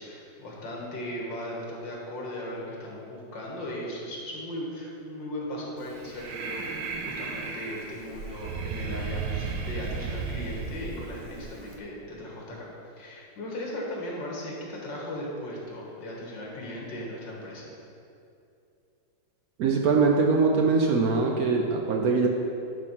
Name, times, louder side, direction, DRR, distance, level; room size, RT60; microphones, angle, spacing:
voice 1, 0.0-6.7 7.0-12.7 13.0-17.7, left 1 dB, 80° left, -3 dB, 2.2 m, -37 dB
Breathing, 5.8-11.8, right 4 dB, 85° right, 1.5 m, -35 dB
voice 2, 19.6-22.3, right 4 dB, 65° right, 1 dB, 0.9 m, -22 dB
11.0 x 3.8 x 5.7 m, 2.6 s
omnidirectional pair, 2.0 m